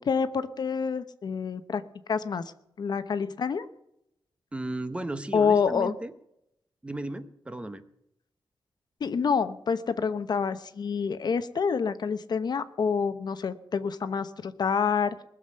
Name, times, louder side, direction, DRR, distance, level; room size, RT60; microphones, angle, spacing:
voice 1, 0.0-1.8 2.1-2.5 2.8-3.7 5.3-5.9 9.0-15.2, left 6 dB, 55° left, 12 dB, 0.9 m, -27 dB
voice 2, 4.5-6.1 6.8-7.8, right 1 dB, 15° right, 11 dB, 0.9 m, -35 dB
20.0 x 7.3 x 9.7 m, 0.79 s
wide cardioid pair, 155°, 8 cm